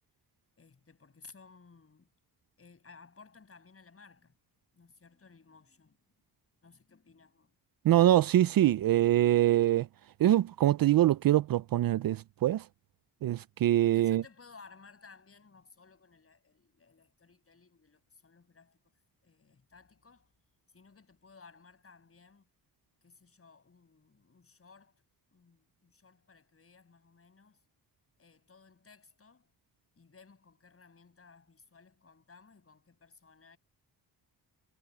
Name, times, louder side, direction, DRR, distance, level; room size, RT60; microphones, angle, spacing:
voice 1, 0.6-2.1 2.6-4.3 4.7-6.0 6.6-7.6 13.8-18.8 19.2-20.3 20.7-22.5 23.0-25.0 25.3-27.6 28.2-29.5 30.0-33.6, left 4 dB, 35° left, 7.4 m, -58 dB
voice 2, 7.8-9.9 10.2-12.7 13.2-14.2, right 13 dB, 60° right, 0.5 m, -24 dB
cardioid pair, 120°, 41 cm